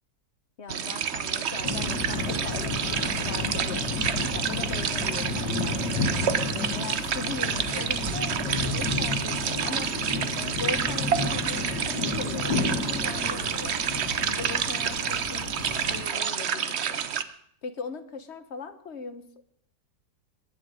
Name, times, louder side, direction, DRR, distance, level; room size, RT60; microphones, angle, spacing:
voice 1, 0.6-3.9 4.3-6.1 6.5-9.9 10.3-13.8 14.3-17.1 17.6-19.2, left 4 dB, 45° left, 10 dB, 1.2 m, -39 dB
sound 1, 0.7-17.2, right 8 dB, 50° right, 0.8 m, -29 dB
sound 2, 1.6-16.0, left 3 dB, 80° left, 2.0 m, -32 dB
22.5 x 10.0 x 5.0 m, 0.63 s
omnidirectional pair, 1.8 m